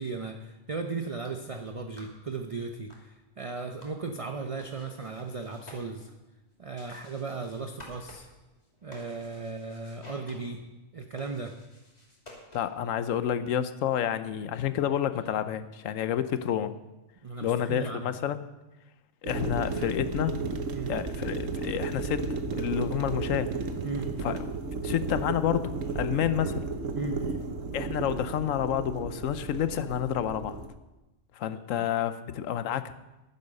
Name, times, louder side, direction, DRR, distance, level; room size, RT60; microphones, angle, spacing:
voice 1, 0.0-6.1 6.6-8.3 8.8-10.6 10.9-11.5 17.2-18.1 20.7-20.9 23.8-24.1 26.9-27.2 31.5-31.9, right 4 dB, 35° right, 5 dB, 0.6 m, -36 dB
sound 1, 1.0-12.9, left 1 dB, 30° left, 2.6 m, -54 dB
voice 2, 12.5-16.7 17.4-18.4 19.2-20.4 20.9-23.5 24.2-24.5 24.8-26.6 27.7-30.6 31.3-32.9, left 10 dB, 90° left, 13 dB, 1.1 m, -29 dB
sound 2, 19.2-30.7, right 4 dB, 80° right, 1.4 m, -33 dB
11.0 x 9.7 x 6.5 m, 1.0 s
omnidirectional pair, 1.3 m